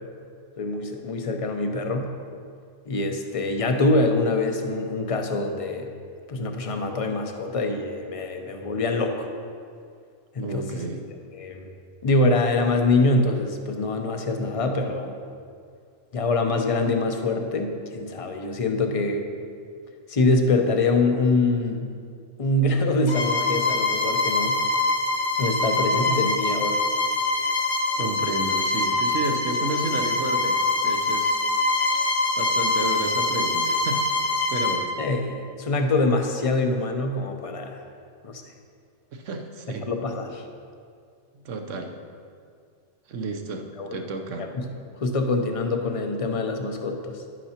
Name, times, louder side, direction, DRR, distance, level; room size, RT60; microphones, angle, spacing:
voice 1, 0.6-2.1 2.9-6.0 6.3-9.3 10.3-10.9 11.3-11.7 12.0-15.2 16.1-19.3 20.1-21.9 22.4-24.6 25.4-26.8 35.0-37.8 38.2-38.4 39.8-40.4 43.8-43.9 44.4-44.7 45.0-47.2, left 2 dB, 35° left, 4 dB, 0.6 m, -24 dB
voice 2, 10.4-11.1 27.9-31.4 32.4-34.1 34.5-34.9 39.1-39.9 41.4-41.9 43.1-44.5, right 3 dB, 75° right, 4 dB, 1.1 m, -31 dB
Bowed string instrument, 23.1-34.9, left 3 dB, 55° left, 1.4 m, -24 dB
11.0 x 9.1 x 2.9 m, 2.2 s
omnidirectional pair, 1.3 m